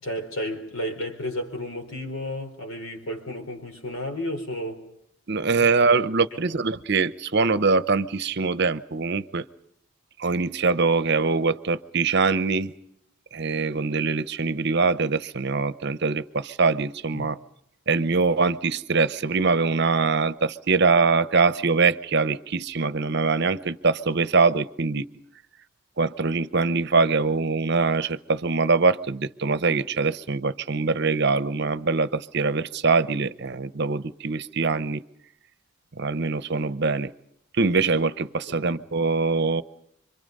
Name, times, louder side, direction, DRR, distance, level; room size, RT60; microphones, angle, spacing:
voice 1, 0.0-4.8 6.5-6.6 17.1-17.3 38.5-38.6, equal, 75° left, 4.7 m, -32 dB
voice 2, 5.3-9.4 10.2-12.7 13.3-17.4 17.9-25.0 26.0-35.0 36.0-37.1 37.6-39.6, right 4 dB, 50° right, 0.8 m, -23 dB
27.0 x 25.0 x 5.4 m
head